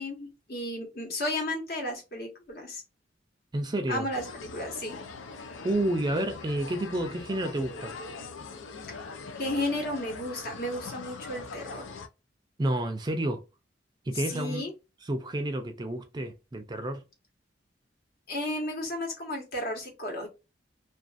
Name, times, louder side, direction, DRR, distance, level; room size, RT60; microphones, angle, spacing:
voice 1, 0.0-2.8 3.9-5.0 9.3-12.0 14.3-14.7 18.3-20.3, left 1 dB, 55° left, 1.1 m, -33 dB
voice 2, 3.5-4.1 5.6-8.0 12.6-13.4 14.1-14.6 15.0-17.0, right 1 dB, 25° right, 0.4 m, -30 dB
sound 1, 4.1-12.1, left 4 dB, 85° left, 0.5 m, -42 dB
2.4 x 2.4 x 2.4 m
head